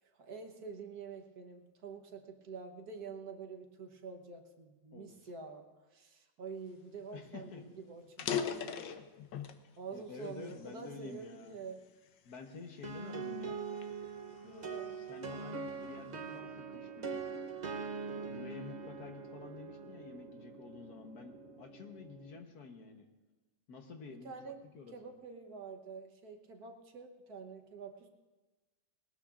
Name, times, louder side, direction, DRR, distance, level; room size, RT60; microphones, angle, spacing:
voice 1, 0.0-5.6 5.9-8.9 9.8-11.8 14.4-14.9 24.1-24.6 24.9-28.1, right 5 dB, 60° right, 4 dB, 1.6 m, -47 dB
voice 2, 4.9-5.3 7.1-7.6 9.9-11.6 12.2-13.6 14.4-17.2 18.0-23.0 23.7-24.9, left 4 dB, 60° left, 4 dB, 1.6 m, -50 dB
sound 1, 7.0-7.1 7.4-7.5 8.0-9.7 10.2-11.5 12.1-12.3 13.0-15.0, left 7 dB, 85° left, 1.5 m, -39 dB
sound 2, 12.8-22.4, right 5 dB, 80° right, 0.4 m, -43 dB
20.5 x 19.0 x 2.5 m, 1.2 s
omnidirectional pair, 2.0 m